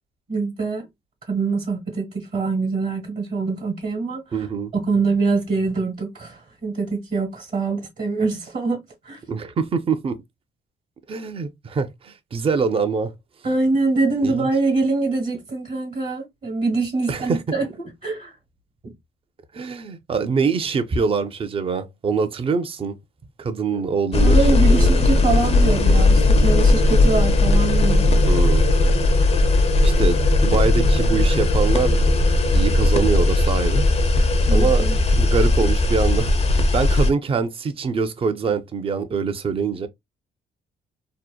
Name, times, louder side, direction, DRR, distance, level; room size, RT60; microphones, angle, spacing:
voice 1, 0.3-0.8 1.3-4.5 4.7-8.8 9.0-9.2 13.4-18.4 23.7-23.8 24.2-28.2 34.5-35.0, right 3 dB, 50° right, 1.1 m, -24 dB
voice 2, 4.3-4.7 9.3-10.2 11.1-13.1 14.2-14.5 17.1-17.4 19.5-23.0 23.4-24.4 24.7-25.0 28.3-28.7 29.8-32.2 32.5-33.8 34.5-39.9, right 5 dB, 30° right, 0.5 m, -24 dB
sound 1, 24.1-37.1, left 2 dB, 35° left, 0.5 m, -17 dB
2.7 x 2.1 x 2.3 m
cardioid pair, 75°, 18 cm